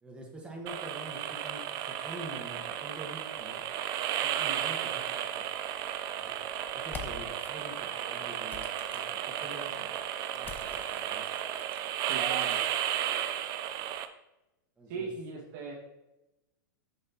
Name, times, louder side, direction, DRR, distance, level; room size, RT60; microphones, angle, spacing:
voice 1, 0.0-3.6 4.2-5.4 6.2-6.3 6.7-9.9 10.3-11.2 14.8-15.1, right 1 dB, 10° right, 0 dB, 1.4 m, -46 dB
sound 1, 0.7-14.1, right 11 dB, 35° right, 0.5 m, -34 dB
sound 2, 6.8-7.5 8.5-9.6 10.4-12.7, left 6 dB, 20° left, 0.6 m, -47 dB
voice 2, 12.1-12.6 14.9-15.7, right 4 dB, 55° right, -3 dB, 1.8 m, -38 dB
6.2 x 6.1 x 3.0 m, 0.96 s
hypercardioid pair, 130°, 11 cm